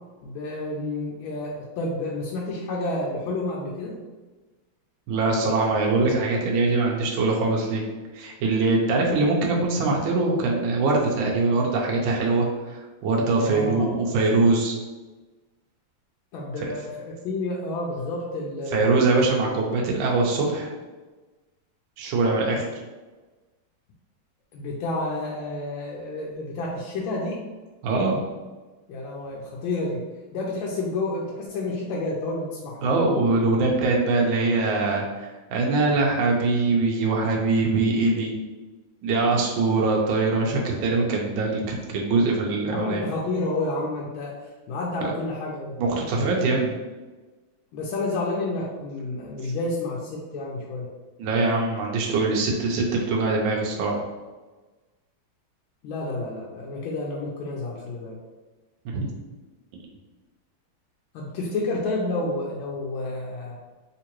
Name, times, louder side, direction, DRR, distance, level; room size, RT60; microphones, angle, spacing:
voice 1, 0.2-4.0 13.4-14.0 16.3-19.2 24.5-27.4 28.9-30.0 30.3-32.9 42.1-44.3 44.7-45.8 47.7-50.9 55.8-58.2 61.1-63.6, left 2 dB, 80° left, -3 dB, 1.3 m, -30 dB
voice 2, 5.1-7.8 8.1-14.8 18.7-20.7 22.0-22.6 27.8-28.2 32.8-38.3 39.0-43.0 45.8-46.7 51.2-54.0 58.8-59.1, right 3 dB, 75° right, -1 dB, 1.3 m, -23 dB
3.6 x 2.9 x 2.9 m, 1.2 s
omnidirectional pair, 2.3 m